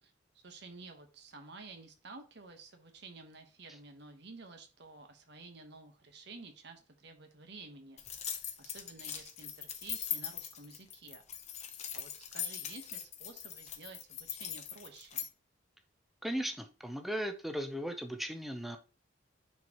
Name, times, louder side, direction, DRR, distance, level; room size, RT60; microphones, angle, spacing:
voice 1, 0.0-11.7 11.9-15.3, right 3 dB, 60° right, 1.2 m, -52 dB
sound 1, 8.0-15.3, left 9 dB, 35° left, 0.8 m, -41 dB
voice 2, 16.2-18.8, equal, ahead, 0.7 m, -37 dB
9.4 x 4.4 x 3.0 m
head